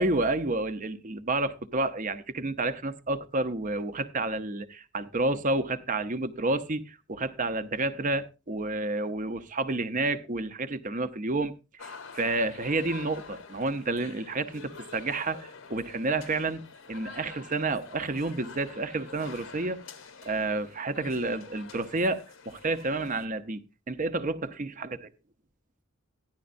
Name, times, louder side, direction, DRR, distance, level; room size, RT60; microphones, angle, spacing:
voice 1, 0.0-16.6 16.9-19.8 20.2-25.0, right 2 dB, 35° right, 0.7 m, -30 dB
sound 1, 11.8-23.3, left 4 dB, 65° left, 0.8 m, -47 dB
15.0 x 10.5 x 2.5 m
head